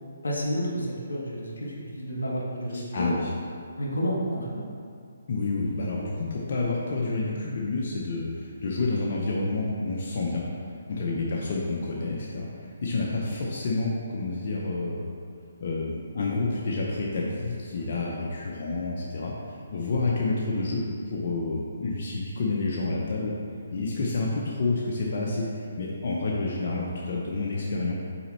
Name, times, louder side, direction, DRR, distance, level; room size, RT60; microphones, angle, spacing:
voice 1, 0.2-3.1 3.8-4.7 10.9-11.2 17.7-18.0, equal, 85° left, -3 dB, 1.5 m, -31 dB
voice 2, 2.7-3.3 5.3-10.4 10.9-15.0 15.6-23.3 23.7-27.9, left 3 dB, 50° left, -3 dB, 0.8 m, -29 dB
5.7 x 4.2 x 4.3 m, 2.3 s
hypercardioid pair, 150°, 0 cm